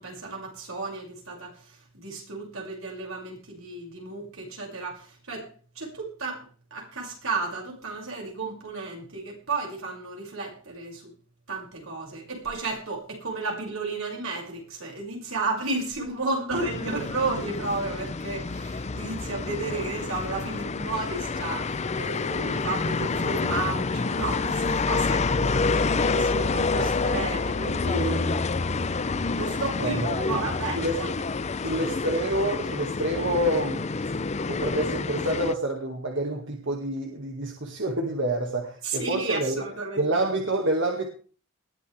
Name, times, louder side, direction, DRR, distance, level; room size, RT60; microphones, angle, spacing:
voice 1, 0.0-5.5 5.7-11.1 11.5-28.4 29.3-31.1 38.8-40.1, right 3 dB, 85° right, -1 dB, 6.4 m, -33 dB
sound 1, 16.5-35.5, left 4 dB, 35° left, 0.6 m, -28 dB
voice 2, 29.8-30.4 30.8-31.0 31.6-33.9 34.5-39.7 40.0-41.1, right 1 dB, 65° right, 2 dB, 2.1 m, -28 dB
20.0 x 14.0 x 3.5 m, 0.41 s
head